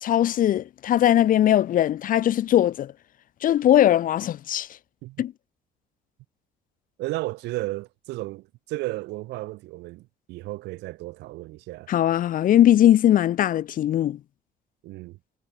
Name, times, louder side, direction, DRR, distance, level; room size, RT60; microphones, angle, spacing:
voice 1, 0.0-2.9 3.4-4.7 5.2-5.3 11.9-14.2, left 11 dB, 55° left, 0.8 m, -20 dB
voice 2, 7.0-11.9 14.8-15.2, right 19 dB, 85° right, 2.3 m, -34 dB
cardioid pair, 110°, 17 cm